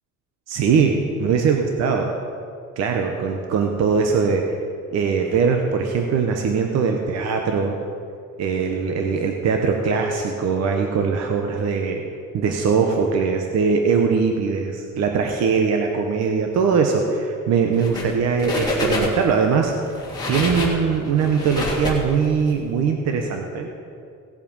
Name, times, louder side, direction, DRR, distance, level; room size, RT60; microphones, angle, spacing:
voice 1, 0.5-2.1 2.8-4.6 4.9-7.8 8.4-12.0 12.3-19.7 20.3-23.8, right 5 dB, 50° right, 3 dB, 0.9 m, -21 dB
sound 1, 17.7-18.1 18.4-19.3 19.9-22.5, left 1 dB, 10° left, 2.3 m, -26 dB
17.5 x 7.4 x 5.3 m, 2.4 s
cardioid pair, 170°, 33 cm